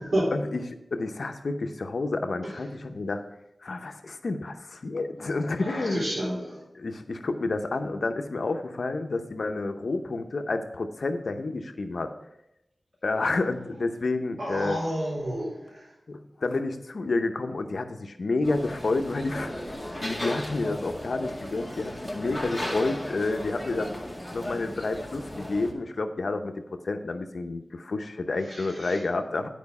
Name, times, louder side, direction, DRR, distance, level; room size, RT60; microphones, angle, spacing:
voice 1, 0.3-3.2 3.6-6.1 6.7-12.1 13.0-14.8 16.1-19.5 20.0-24.0 24.3-29.5, left 3 dB, 80° left, 7 dB, 0.7 m, -30 dB
voice 2, 5.6-6.6 14.4-15.8 28.5-29.0, right 1 dB, 85° right, -5 dB, 3.8 m, -30 dB
sound 1, 18.4-25.7, left 1 dB, 5° left, 2.0 m, -35 dB
9.4 x 5.0 x 5.4 m, 0.86 s
wide cardioid pair, 60°, 0 cm